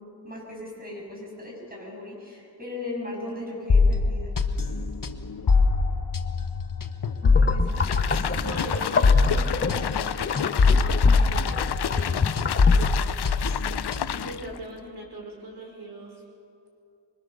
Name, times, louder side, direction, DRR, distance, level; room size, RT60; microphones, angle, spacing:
voice 1, 0.2-4.3 7.3-7.9, left 2 dB, 20° right, -2 dB, 7.6 m, -37 dB
sound 1, 3.7-12.1 12.4-14.3, left 4 dB, 55° left, 1.3 m, -22 dB
sound 2, 7.2-13.0, left 5 dB, 30° left, 0.8 m, -29 dB
sound 3, 7.7-14.6, left 10 dB, 75° left, 0.6 m, -31 dB
voice 2, 8.4-11.5 11.9-12.3 12.7-13.2 14.1-16.2, right 2 dB, 70° right, 0 dB, 5.3 m, -40 dB
25.5 x 24.0 x 6.8 m, 2.6 s
wide cardioid pair, 130°, 40 cm